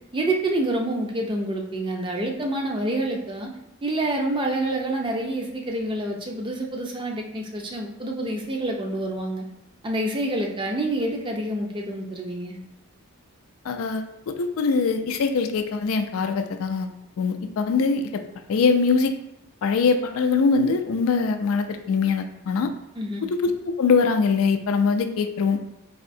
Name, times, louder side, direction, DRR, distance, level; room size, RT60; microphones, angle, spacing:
voice 1, 0.1-3.5 3.8-9.4 9.8-12.6 23.0-23.3, right 1 dB, 20° right, 1 dB, 0.4 m, -27 dB
voice 2, 13.6-16.9 17.2-18.2 18.5-19.2 19.6-22.7 23.4-23.5 23.8-25.6, left 4 dB, 65° left, 6 dB, 0.3 m, -22 dB
4.1 x 2.7 x 2.6 m, 0.87 s
head